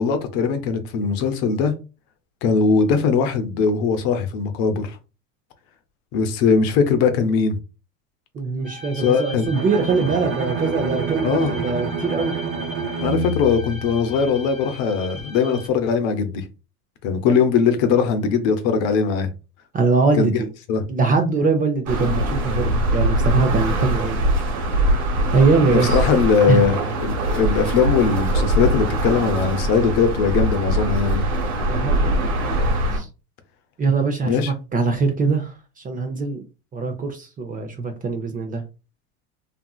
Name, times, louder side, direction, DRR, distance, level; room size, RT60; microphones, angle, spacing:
voice 1, 0.0-1.7 2.4-5.0 6.1-7.6 9.0-9.5 11.2-11.6 13.0-16.4 17.0-19.3 20.2-20.4 20.7-20.8 25.7-31.3 34.2-34.5, left 5 dB, 55° left, 0.7 m, -20 dB
voice 2, 8.3-12.4 17.3-17.4 19.7-20.3 20.9-24.2 25.3-26.0 26.5-26.7 31.7-32.1 32.4-32.6 32.9-33.1 33.8-36.4 36.7-38.6, right 4 dB, 20° right, 0.4 m, -22 dB
sound 1, 8.6-15.7, left 1 dB, ahead, 1.2 m, -39 dB
Bowed string instrument, 9.5-14.6, right 3 dB, 50° right, 0.8 m, -28 dB
sound 2, 21.9-33.0, right 1 dB, 80° right, 1.2 m, -22 dB
2.7 x 2.5 x 2.3 m
hypercardioid pair, 95°, 43 cm